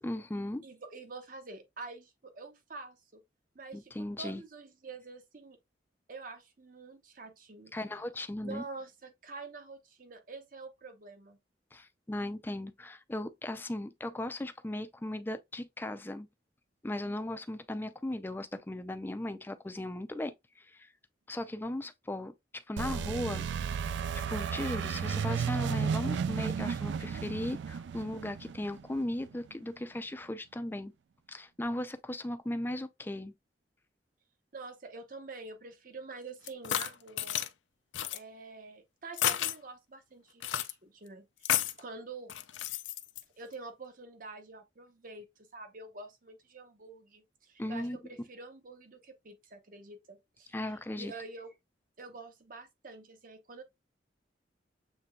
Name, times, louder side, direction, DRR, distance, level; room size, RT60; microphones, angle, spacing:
voice 1, 0.0-0.7 3.7-4.4 7.7-8.6 11.7-16.3 16.8-20.9 21.3-23.5 24.3-30.9 31.3-33.3 47.6-48.0 50.5-51.1, left 1 dB, 10° left, 0.3 m, -37 dB
voice 2, 0.6-3.2 3.5-3.9 4.2-5.6 6.1-7.7 8.4-11.4 34.5-37.4 38.1-42.3 43.4-51.5 52.0-53.6, right 3 dB, 50° right, 0.8 m, -47 dB
sound 1, 22.8-29.3, right 6 dB, 70° right, 0.3 m, -33 dB
sound 2, 36.5-37.5 37.9-38.2 39.1-39.6 40.4-40.7 41.4-41.8 42.3-43.2, left 12 dB, 85° left, 0.4 m, -31 dB
6.7 x 3.2 x 2.2 m
head